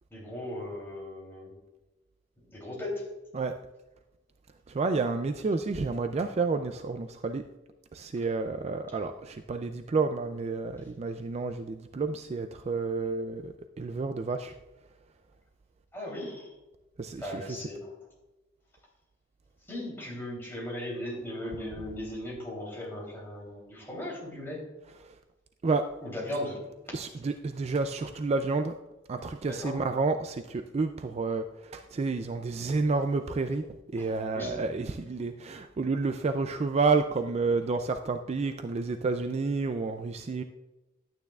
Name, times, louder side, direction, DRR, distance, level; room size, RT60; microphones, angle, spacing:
voice 1, 0.1-1.5 2.5-3.0 15.9-16.5 17.2-17.9 19.7-24.7 26.0-26.6 29.5-29.8 34.0-34.6, left 1 dB, 10° left, -3 dB, 3.1 m, -37 dB
voice 2, 4.7-7.4 7.9-14.5 17.0-17.6 25.0-25.1 25.6-25.9 26.9-28.7 29.1-33.7 33.9-40.4, right 4 dB, 35° right, 8 dB, 0.3 m, -30 dB
11.5 x 9.1 x 2.4 m, 1.0 s
head